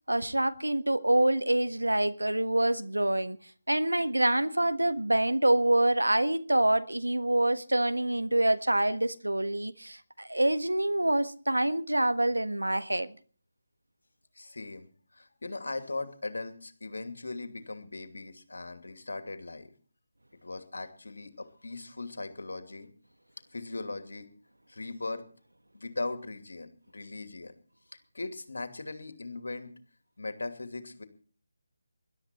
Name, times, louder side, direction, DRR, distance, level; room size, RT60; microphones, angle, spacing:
voice 1, 0.1-3.4 3.7-13.1, right 1 dB, 85° right, 1.4 m, -26 dB
voice 2, 14.3-14.9 15.1-19.7 20.4-22.9 23.5-24.3 24.7-25.3 25.7-27.5 28.1-29.8 30.2-31.0, left 2 dB, 65° left, 2.6 m, -39 dB
21.0 x 12.5 x 4.4 m
figure-of-eight pair, 155°, 0 cm